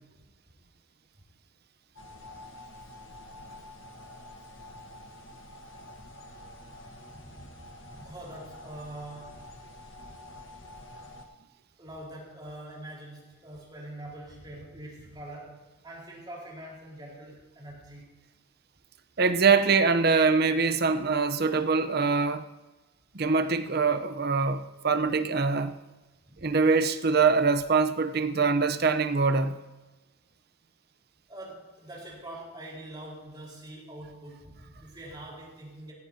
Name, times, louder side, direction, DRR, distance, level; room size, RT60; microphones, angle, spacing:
sound 1, 2.0-11.3, left 1 dB, 75° left, 1.3 m, -47 dB
voice 1, 7.1-9.4 10.0-10.1 11.8-18.2 26.3-26.6 31.3-35.9, right 1 dB, 20° right, 4.4 m, -44 dB
voice 2, 19.2-22.4 23.1-25.8 26.4-29.6, right 4 dB, 50° right, 0.8 m, -24 dB
16.5 x 15.5 x 2.8 m
head